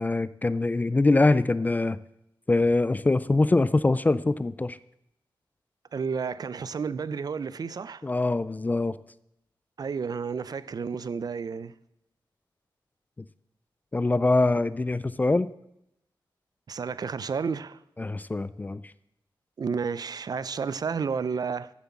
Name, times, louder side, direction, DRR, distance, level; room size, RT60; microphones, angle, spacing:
voice 1, 0.0-2.0 2.5-4.8 8.0-9.0 13.9-15.5 18.0-18.8, left 2 dB, 20° left, 0.3 m, -23 dB
voice 2, 5.9-8.0 9.8-11.7 16.7-17.8 19.6-21.7, right 5 dB, 50° right, 0.5 m, -31 dB
13.0 x 7.4 x 7.2 m
wide cardioid pair, 155°, 8 cm